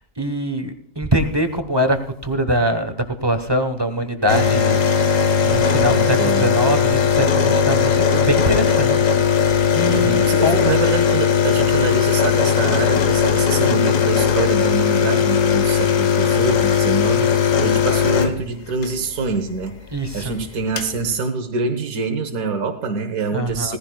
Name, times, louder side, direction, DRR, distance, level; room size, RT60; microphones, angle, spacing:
voice 1, 0.0-10.6 19.9-20.4 23.3-23.8, equal, 20° right, 8 dB, 0.9 m, -23 dB
sound 1, 4.3-18.9 20.2-20.3 20.5-20.9, left 7 dB, 65° left, 1.4 m, -18 dB
voice 2, 5.9-6.5 9.9-19.8 20.1-23.8, right 4 dB, 75° right, 4 dB, 1.6 m, -25 dB
17.5 x 15.0 x 2.3 m, 0.64 s
omnidirectional pair, 1.5 m